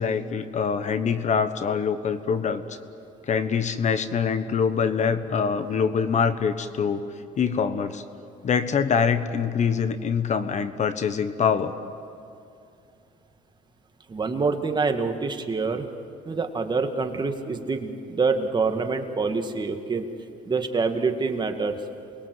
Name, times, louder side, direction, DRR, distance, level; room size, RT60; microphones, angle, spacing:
voice 1, 0.0-2.8 3.3-7.1 7.4-8.0 8.4-11.8, left 6 dB, 45° left, 11 dB, 1.2 m, -24 dB
voice 2, 14.1-15.9 16.3-20.1 20.5-21.8, right 4 dB, 25° right, 5 dB, 1.9 m, -26 dB
28.5 x 21.0 x 7.9 m, 2.6 s
cardioid pair, 110°, 17 cm